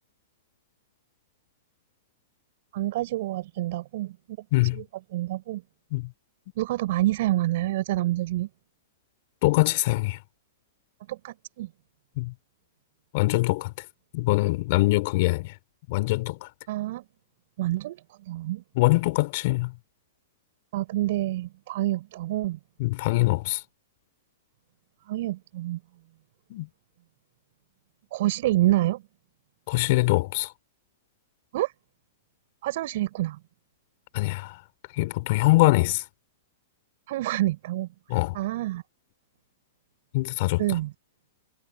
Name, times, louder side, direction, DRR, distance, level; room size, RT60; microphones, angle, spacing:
voice 1, 2.7-4.1 4.7-4.8 5.1-5.6 6.6-8.5 11.1-11.7 16.7-17.0 17.6-18.6 20.7-22.6 25.1-25.8 28.1-29.0 31.5-31.7 32.6-33.4 37.1-37.9 38.3-38.8 40.6-40.9, right 16 dB, 60° right, 6.6 m, -27 dB
voice 2, 9.4-10.2 12.2-12.3 13.1-13.7 14.1-15.5 15.9-16.5 18.8-19.7 22.8-23.6 26.5-26.7 29.7-30.5 34.1-34.5 35.0-36.0 38.1-38.4 40.1-40.6, left 21 dB, 50° left, 4.3 m, -23 dB
hypercardioid pair, 125°, 0 cm